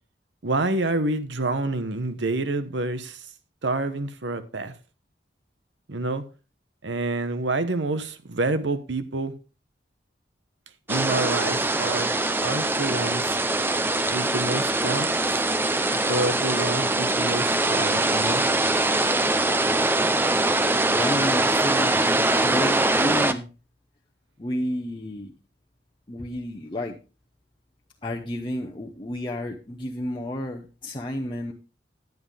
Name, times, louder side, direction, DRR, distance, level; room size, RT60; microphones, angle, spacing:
voice 1, 0.4-3.2 3.6-4.7 5.9-6.2 6.8-9.3 10.9-12.1 12.4-13.4 14.1-15.1 15.9-18.4, right 2 dB, 85° right, 1.1 m, -28 dB
sound 1, 10.9-23.3, right 2 dB, 10° right, 0.5 m, -23 dB
voice 2, 20.9-23.5 24.4-25.3 26.1-27.0 28.0-31.5, left 1 dB, 25° left, 0.9 m, -31 dB
10.5 x 9.4 x 3.5 m
head